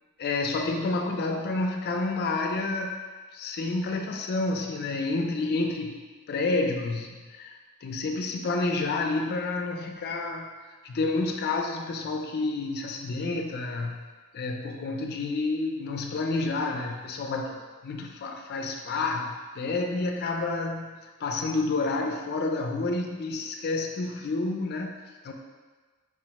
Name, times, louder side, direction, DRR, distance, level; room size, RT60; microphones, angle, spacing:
voice 1, 0.2-2.9 3.3-6.0 6.3-10.5 10.8-14.0 14.3-25.0 25.2-25.3, left 3 dB, 50° left, 3 dB, 0.4 m, -29 dB
5.0 x 2.1 x 2.9 m, 1.4 s
head